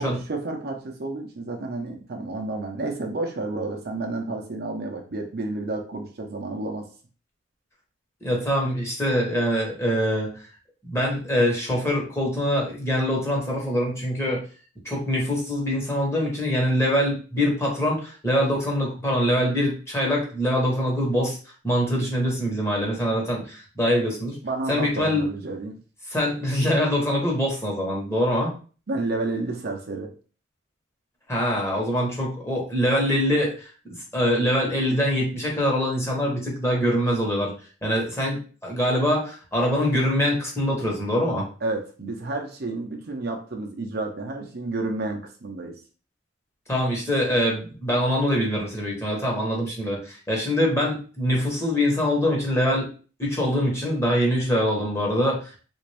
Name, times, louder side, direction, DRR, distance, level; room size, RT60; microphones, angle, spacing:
voice 1, 0.0-6.9 24.4-25.8 28.9-30.1 41.6-45.8, right 2 dB, 55° right, 2 dB, 0.7 m, -30 dB
voice 2, 8.2-10.4 10.8-14.4 14.8-21.4 21.6-24.4 24.7-25.3 26.1-28.5 31.3-33.7 34.1-37.5 37.8-41.5 46.7-52.9 53.2-55.6, equal, 15° left, -2 dB, 1.1 m, -24 dB
3.5 x 2.5 x 3.3 m, 0.38 s
head